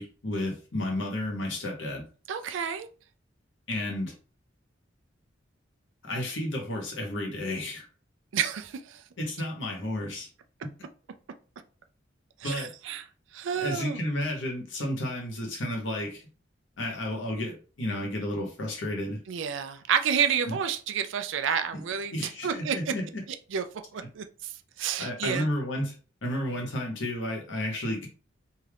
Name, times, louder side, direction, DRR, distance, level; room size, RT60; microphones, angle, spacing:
voice 1, 0.0-2.1 3.7-4.1 6.0-7.9 9.2-10.3 12.4-12.7 13.6-16.2 16.8-19.2 20.5-20.6 21.7-21.8 22.1-23.2 25.0-25.9 26.2-28.1, left 1 dB, 80° left, 0 dB, 1.1 m, -32 dB
voice 2, 2.3-2.9 8.3-9.0 12.4-13.0 13.3-14.0 19.3-22.8 23.5-23.6 23.9-24.5 24.8-25.5, right 7 dB, 80° right, 8 dB, 0.4 m, -29 dB
2.7 x 2.4 x 3.4 m, 0.38 s
head